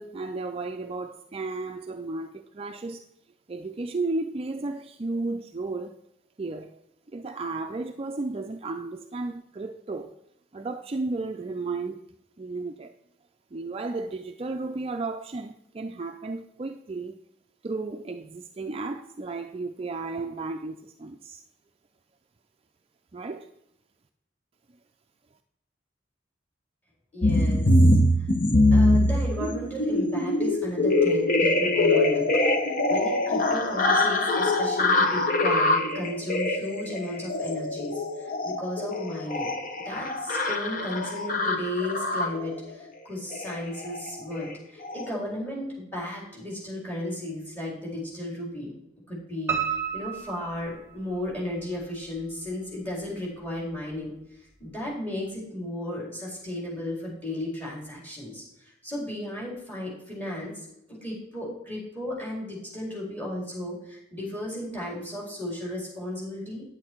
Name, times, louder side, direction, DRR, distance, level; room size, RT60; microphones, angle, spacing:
voice 1, 0.0-3.0 3.5-6.0 6.4-6.8 7.1-10.1 10.5-12.0 12.4-12.9 13.5-17.2 17.6-21.4 23.1-23.5, right 3 dB, 30° right, 0.4 m, -33 dB
voice 2, 27.1-27.9 28.7-32.2 32.9-39.5 39.8-48.7 49.1-54.1 54.6-66.6, left 1 dB, 10° left, 3.9 m, -34 dB
sound 1, 27.2-42.6 43.3-43.6 43.8-44.1 44.4-44.5 44.8-45.0, left 2 dB, 45° left, 1.0 m, -23 dB
Piano, 49.5-51.4 51.8-52.7 53.0-53.1 53.6-53.7 53.9-54.0, right 8 dB, 15° right, 1.4 m, -32 dB
9.5 x 8.4 x 4.5 m
head